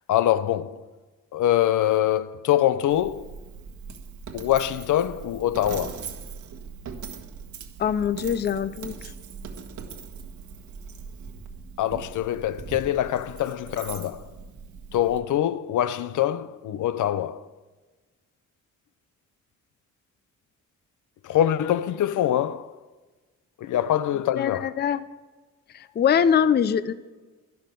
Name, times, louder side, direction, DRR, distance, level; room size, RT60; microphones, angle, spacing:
voice 1, 0.1-0.8 1.3-3.3 4.3-6.0 11.8-14.3 14.9-17.4 21.2-22.7 23.6-24.7, left 12 dB, 80° left, 0.6 m, -24 dB
Coin (dropping), 2.9-15.2, right 6 dB, 75° right, 1.5 m, -40 dB
voice 2, 7.8-9.1 24.4-25.0 25.7-26.9, left 8 dB, 35° left, 0.4 m, -23 dB
12.0 x 12.0 x 5.2 m
wide cardioid pair, 150°, 30 cm